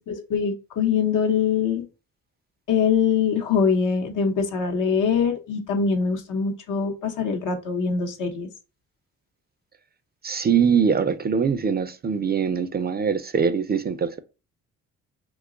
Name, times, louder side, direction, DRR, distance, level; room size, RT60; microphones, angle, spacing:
voice 1, 0.1-1.9 2.7-8.5, left 6 dB, 65° left, 0.8 m, -23 dB
voice 2, 10.2-14.2, right 6 dB, 30° right, 0.4 m, -22 dB
3.0 x 2.3 x 3.7 m
supercardioid pair, 60°, 33 cm